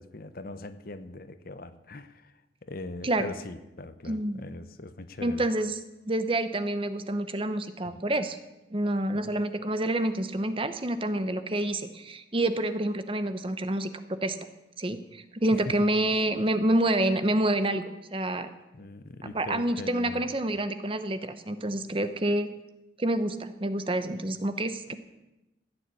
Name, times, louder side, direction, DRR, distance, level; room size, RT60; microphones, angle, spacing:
voice 1, 0.0-2.3 2.6-5.5 7.8-8.0 9.1-9.4 15.5-15.9 18.7-20.3 24.9-25.0, left 2 dB, 50° left, 11 dB, 0.9 m, -41 dB
voice 2, 4.1-4.4 5.2-5.8 6.0-8.4 8.7-14.4 14.8-18.5 19.3-22.5 23.0-25.0, right 1 dB, 30° right, 10 dB, 0.9 m, -28 dB
15.0 x 9.2 x 8.4 m, 0.97 s
head